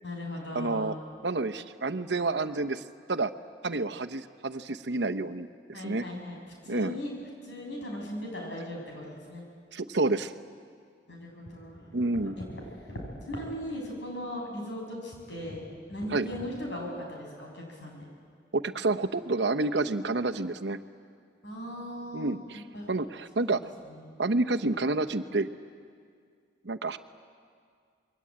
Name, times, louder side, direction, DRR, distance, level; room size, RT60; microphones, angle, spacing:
voice 1, 0.0-1.0 5.7-6.4 6.6-7.1 7.4-9.4 11.1-18.1 21.4-22.4 22.7-22.9 23.3-23.6 23.9-24.2, left 1 dB, 80° left, 0 dB, 7.5 m, -38 dB
voice 2, 0.5-1.0 1.2-2.8 3.1-3.3 3.6-6.0 6.7-7.0 9.7-10.3 11.9-12.3 16.1-16.3 18.5-20.8 22.1-22.6 22.9-23.6 24.2-25.5 26.6-27.0, right 2 dB, 75° right, 8 dB, 1.0 m, -29 dB
26.5 x 22.5 x 8.8 m, 2.1 s
head